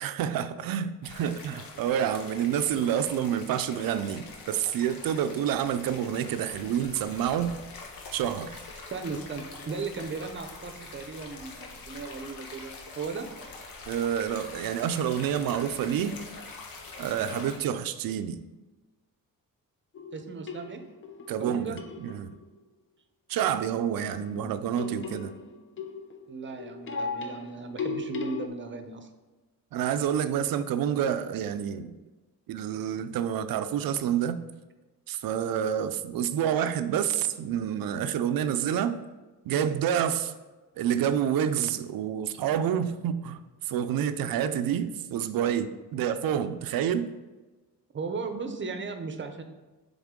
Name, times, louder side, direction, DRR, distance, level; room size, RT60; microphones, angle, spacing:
voice 1, 0.0-7.6 8.1-8.6 13.9-16.2 17.0-18.4 21.3-22.4 23.3-25.3 29.7-31.9 32.5-34.4 35.1-39.0 39.5-40.3 40.8-47.1, right 9 dB, 85° right, 11 dB, 0.5 m, -28 dB
sound 1, 1.0-17.6, left 3 dB, 90° left, 1.0 m, -44 dB
voice 2, 8.8-13.3 20.1-20.8 21.4-21.8 26.3-29.1 47.9-49.4, right 4 dB, 35° right, 7 dB, 0.7 m, -36 dB
sound 2, 19.9-22.4 24.0-28.5, left 4 dB, 35° left, 0.6 m, -37 dB
7.1 x 3.6 x 3.7 m, 1.2 s
cardioid pair, 95°, 34 cm